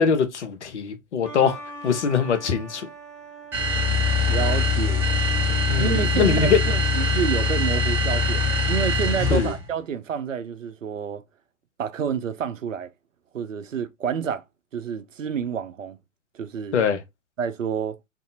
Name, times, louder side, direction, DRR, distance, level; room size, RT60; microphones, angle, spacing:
voice 1, 0.0-2.9 5.7-6.6 9.3-9.5 16.7-17.0, left 6 dB, 60° left, 0.7 m, -22 dB
sound 1, 1.2-7.5, right 4 dB, 50° right, 1.5 m, -42 dB
sound 2, 3.5-9.7, left 3 dB, 5° right, 0.4 m, -22 dB
voice 2, 4.3-5.0 5.8-11.2 11.8-12.9 13.3-14.4 14.7-16.0 16.3-16.8 17.4-18.0, right 7 dB, 75° right, 0.5 m, -29 dB
2.6 x 2.5 x 2.5 m
figure-of-eight pair, 110°, 39 cm